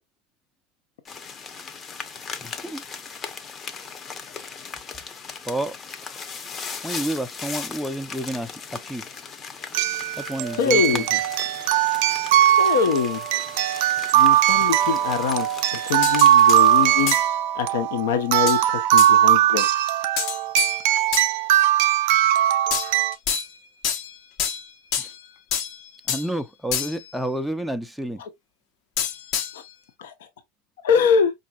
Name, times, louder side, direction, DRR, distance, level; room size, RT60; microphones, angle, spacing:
sound 1, 1.0-17.2, left 5 dB, 30° left, 0.8 m, -38 dB
voice 1, 2.4-2.8 5.5-5.8 6.0-6.2 6.8-9.1 10.2-11.2 25.0-25.1 26.1-28.2, right 1 dB, ahead, 0.4 m, -30 dB
sound 2, 8.3-8.4 9.7-23.1, right 12 dB, 65° right, 0.4 m, -20 dB
voice 2, 10.6-11.1 12.6-13.2 14.1-17.1 17.6-19.7 28.2-28.3 30.0-30.1 30.8-31.3, left 6 dB, 80° left, 0.8 m, -23 dB
sound 3, 16.0-16.6 17.1-17.3 18.5-18.6 19.0-19.1 20.2-21.3 22.7-23.6 23.8-25.2 25.5-26.3 26.7-27.1 29.0-29.7, left 8 dB, 55° left, 0.9 m, -28 dB
4.9 x 2.6 x 2.3 m
hypercardioid pair, 100°, 0 cm